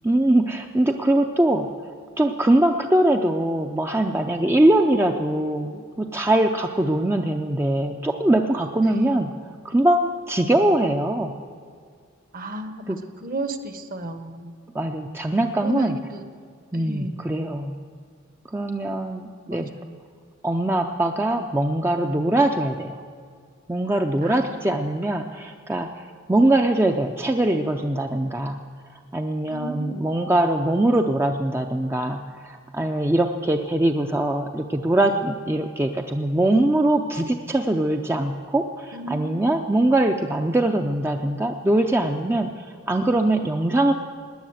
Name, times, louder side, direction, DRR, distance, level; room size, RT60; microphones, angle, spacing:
voice 1, 0.0-1.7 2.2-9.3 9.6-11.3 12.9-13.0 14.7-15.9 16.7-17.8 18.5-19.7 20.4-23.0 23.7-26.0 26.3-28.6 29.1-43.9, right 1 dB, 10° right, 4 dB, 0.5 m, -22 dB
voice 2, 8.8-9.3 12.3-14.5 15.6-16.2 16.7-17.3 19.5-20.0 24.2-24.7 29.5-30.2 38.9-39.4, right 2 dB, 45° right, 9 dB, 1.1 m, -34 dB
17.5 x 10.0 x 7.8 m, 2.1 s
head